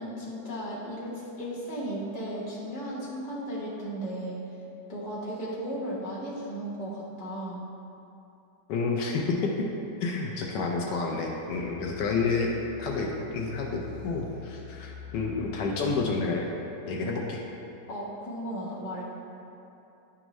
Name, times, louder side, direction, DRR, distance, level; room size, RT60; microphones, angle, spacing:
voice 1, 0.0-4.4 4.9-7.6 12.1-12.4 17.9-19.0, right 1 dB, 25° left, -7 dB, 1.0 m, -35 dB
voice 2, 8.7-9.5 10.0-12.5 12.8-16.5 16.9-17.4, left 4 dB, 75° left, 0 dB, 1.2 m, -29 dB
sound 1, 11.2-16.2, left 7 dB, 65° right, 1.1 m, -46 dB
9.9 x 3.6 x 3.0 m, 2.8 s
omnidirectional pair, 1.9 m